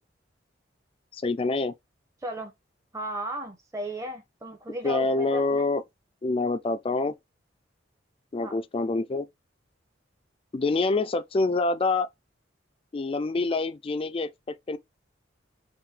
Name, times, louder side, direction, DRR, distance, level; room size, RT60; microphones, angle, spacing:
voice 1, 1.1-1.7 4.8-5.8 6.2-7.1 8.3-9.3 10.5-12.1 12.9-14.8, left 3 dB, 30° left, 0.3 m, -26 dB
voice 2, 2.2-2.5 2.9-5.7 8.4-8.6, right 1 dB, 15° right, 0.7 m, -35 dB
3.2 x 2.6 x 3.4 m
head